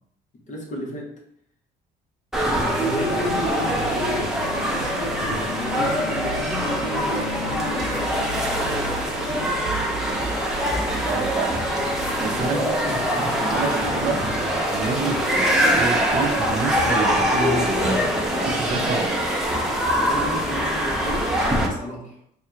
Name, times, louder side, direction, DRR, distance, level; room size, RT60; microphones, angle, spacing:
voice 1, 0.5-1.1 2.5-4.2 4.5-9.6 12.3-14.5 20.1-22.2, equal, 45° left, 0 dB, 1.0 m, -34 dB
sound 1, 2.3-21.7, equal, 5° right, 0.8 m, -23 dB
sound 2, 3.0-21.4 21.7-21.8, left 4 dB, 80° left, 0.4 m, -39 dB
voice 2, 11.0-11.6 12.2-12.6 13.5-14.2 14.7-19.3, right 4 dB, 45° right, 4 dB, 0.7 m, -28 dB
3.6 x 2.3 x 4.5 m, 0.70 s
cardioid pair, 110°, 17 cm